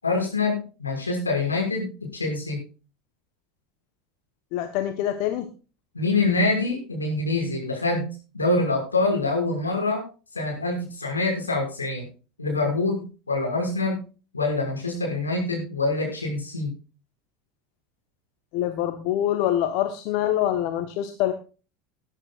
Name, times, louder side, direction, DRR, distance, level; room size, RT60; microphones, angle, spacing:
voice 1, 0.0-2.6 5.9-10.0 10.3-12.1 12.4-14.0 14.3-16.7, left 3 dB, 85° left, -1 dB, 6.2 m, -25 dB
voice 2, 4.5-5.5 18.5-21.3, left 12 dB, 55° left, 8 dB, 1.3 m, -25 dB
20.5 x 10.5 x 2.5 m, 0.34 s
figure-of-eight pair, 75°, 0 cm